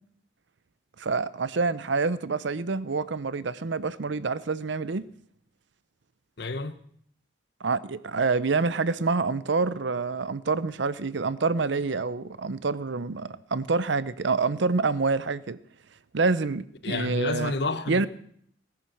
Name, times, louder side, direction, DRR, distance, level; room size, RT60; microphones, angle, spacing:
voice 1, 1.0-5.1 7.6-15.6 16.1-17.5 17.9-18.1, right 4 dB, 70° right, 0.6 m, -27 dB
voice 2, 6.4-6.8 16.8-18.1, left 3 dB, 55° left, 1.0 m, -30 dB
18.0 x 10.5 x 6.4 m
head